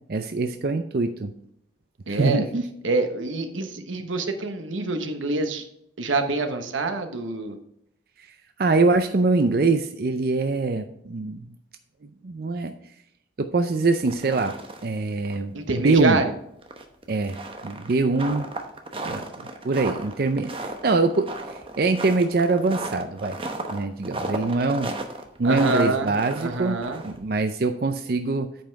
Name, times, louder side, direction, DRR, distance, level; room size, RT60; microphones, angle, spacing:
voice 1, 0.1-1.3 2.1-2.7 8.6-11.6 12.2-12.7 13.4-14.5 14.8-16.2 17.1-18.5 19.0-19.2 19.6-23.4 23.7-24.9 25.4-26.8 27.0-28.6, right 3 dB, 50° right, 8 dB, 0.5 m, -23 dB
voice 2, 2.1-2.5 2.8-5.7 6.0-7.6 15.5-16.2 25.4-26.1 26.4-27.0, right 3 dB, 90° right, 6 dB, 1.1 m, -26 dB
sound 1, 14.0-15.0 15.2-15.4 15.8-15.9 16.6-27.3, right 2 dB, 30° right, 0.9 m, -34 dB
8.9 x 5.5 x 4.6 m, 0.76 s
head